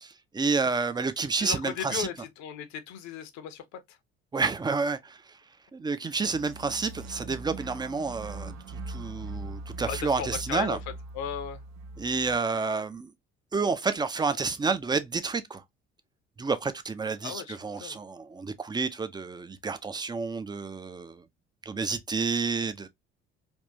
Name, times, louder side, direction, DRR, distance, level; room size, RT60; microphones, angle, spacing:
voice 1, 0.0-2.1 4.3-5.4 5.7-10.8 12.0-13.1 13.5-15.6 16.4-21.2 21.7-22.9, right 4 dB, 15° right, 0.4 m, -30 dB
voice 2, 1.4-3.8 9.9-10.8 11.1-11.6 17.2-18.0, left 8 dB, 60° left, 0.8 m, -36 dB
sound 1, 6.1-12.4, right 2 dB, 60° right, 0.6 m, -41 dB
3.5 x 2.5 x 2.6 m
figure-of-eight pair, 50°, 32 cm